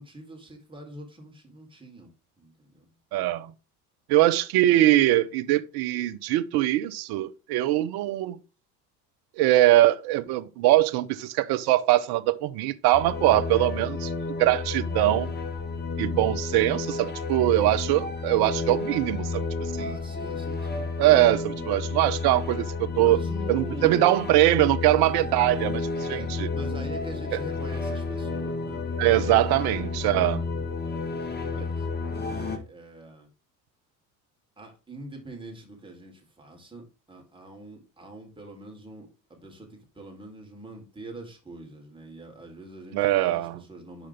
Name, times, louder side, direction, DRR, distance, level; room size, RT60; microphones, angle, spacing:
voice 1, 0.0-2.1 2.4-3.0 19.8-20.9 21.5-22.0 23.0-24.2 26.1-26.3 26.5-30.5 30.8-33.3 34.6-44.1, right 1 dB, 10° right, 3.9 m, -44 dB
voice 2, 3.1-3.5 4.1-8.4 9.4-14.1 14.4-15.3 16.0-19.5 19.8-20.0 21.0-23.2 23.5-26.5 29.0-30.4 42.9-43.6, right 15 dB, 50° right, 1.0 m, -22 dB
sound 1, 12.9-32.6, left 4 dB, 20° left, 1.7 m, -31 dB
11.5 x 5.0 x 3.6 m
figure-of-eight pair, 65°, 49 cm